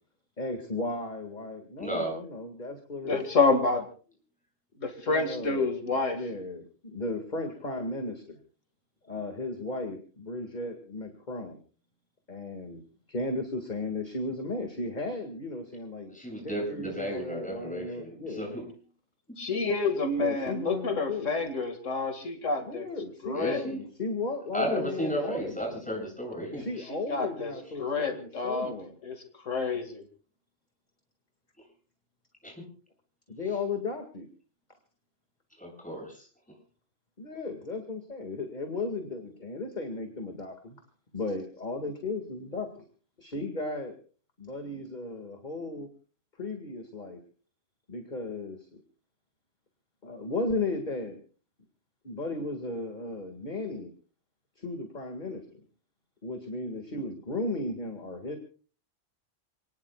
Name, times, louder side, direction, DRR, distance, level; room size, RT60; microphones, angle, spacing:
voice 1, 0.4-3.2 5.1-5.7 6.1-8.4 9.0-11.6 12.3-12.8 13.1-16.1 16.4-18.5 20.2-21.3 22.6-25.8 26.6-28.9 33.3-34.3 37.2-40.8 41.1-42.8 43.2-44.0 44.4-45.9 46.4-47.2 47.9-48.8 50.0-51.2 52.0-53.9 54.6-55.6 56.2-58.4, left 2 dB, 35° left, 5 dB, 2.2 m, -35 dB
voice 2, 1.8-2.2 3.0-3.2 16.1-18.6 23.3-23.8 24.5-26.7 32.4-32.5 35.6-36.3, equal, 5° left, 0 dB, 7.8 m, -33 dB
voice 3, 3.1-3.9 4.8-6.2 19.4-22.9 23.2-23.6 26.9-28.7 29.1-29.2 29.5-30.0, left 4 dB, 80° left, 6 dB, 2.5 m, -28 dB
28.0 x 19.5 x 2.4 m, 0.40 s
omnidirectional pair, 1.3 m